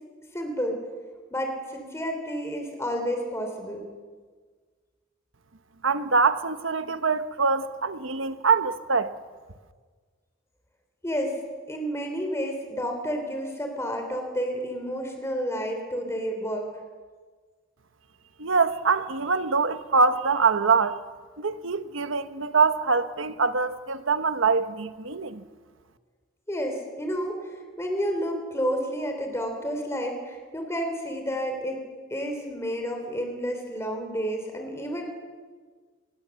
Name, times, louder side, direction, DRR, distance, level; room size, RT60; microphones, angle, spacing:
voice 1, 0.3-0.8 1.3-3.9 11.0-11.3 11.7-16.6 26.5-27.4 27.8-31.8 32.1-35.0, equal, 15° left, 3.2 m, -30 dB
voice 2, 5.8-9.2 18.4-21.0 21.4-25.4, right 4 dB, 80° right, 1.2 m, -24 dB
25.5 x 19.5 x 7.1 m
head